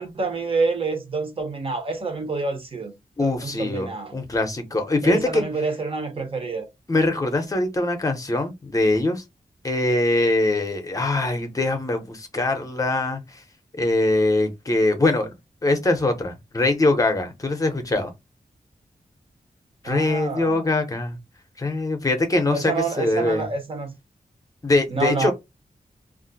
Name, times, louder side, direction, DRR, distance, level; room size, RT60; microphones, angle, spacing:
voice 1, 0.0-2.9 3.2-4.2 5.0-6.7 19.8-20.6 22.5-23.9 24.9-25.3, right 4 dB, 40° right, 0.8 m, -27 dB
voice 2, 3.2-5.4 6.9-9.2 9.6-13.4 13.8-15.3 15.6-18.1 19.8-21.2 21.6-23.5 24.6-25.3, left 2 dB, 25° left, 0.7 m, -22 dB
2.4 x 2.0 x 3.8 m
wide cardioid pair, 165°, 15 cm